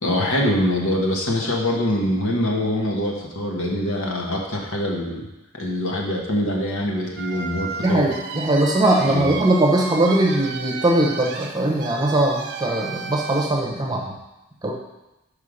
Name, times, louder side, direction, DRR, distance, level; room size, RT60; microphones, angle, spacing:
voice 1, 0.0-5.2 5.5-8.1 9.0-9.3, left 1 dB, 70° left, -1 dB, 1.2 m, -24 dB
sound 1, 7.2-13.5, right 5 dB, 50° right, 0.5 m, -33 dB
voice 2, 7.8-14.0 14.6-14.7, right 1 dB, 20° right, -1 dB, 0.8 m, -20 dB
5.5 x 5.0 x 5.0 m, 0.98 s
head